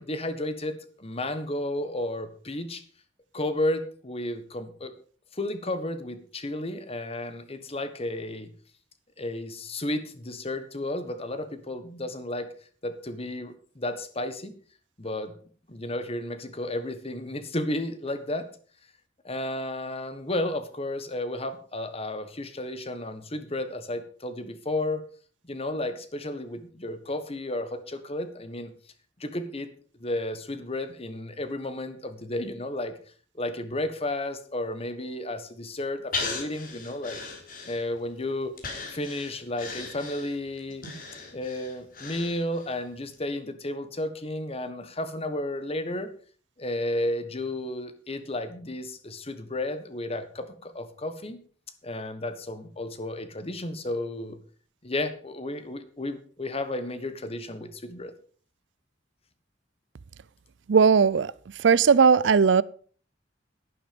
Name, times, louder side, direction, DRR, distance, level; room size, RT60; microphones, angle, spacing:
voice 1, 0.0-2.8 3.3-4.9 5.3-8.5 9.2-12.5 12.8-14.5 15.0-15.3 15.7-18.5 19.2-25.0 25.4-28.7 29.2-29.7 30.0-33.0 33.3-37.2 37.6-38.5 38.9-40.8 41.3-46.1 46.6-51.4 51.8-54.4 54.8-58.1, left 1 dB, 35° left, 1.5 m, -32 dB
Breathing, 36.1-38.1 38.6-42.8 43.1-43.2, left 4 dB, 50° left, 3.5 m, -37 dB
voice 2, 60.7-61.3 61.6-62.6, right 6 dB, 80° right, 0.5 m, -18 dB
11.0 x 11.0 x 5.3 m
head